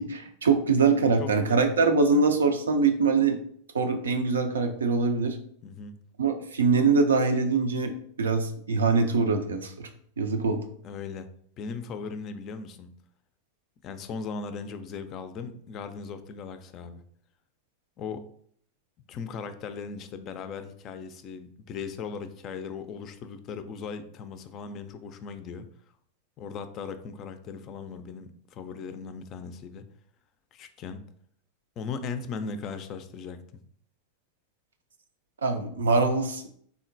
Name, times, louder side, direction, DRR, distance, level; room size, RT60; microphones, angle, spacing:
voice 1, 0.0-3.4 3.7-5.4 6.2-9.9 10.2-10.6 35.4-36.6, right 4 dB, 85° right, 6 dB, 0.4 m, -23 dB
voice 2, 5.6-6.0 10.8-11.3 11.6-12.9 13.8-17.0 18.0-18.2 19.1-25.7 26.4-29.8 30.5-31.0 31.8-33.4, left 5 dB, 40° left, 10 dB, 0.3 m, -38 dB
3.6 x 2.1 x 2.5 m, 0.63 s
hypercardioid pair, 95°, 0 cm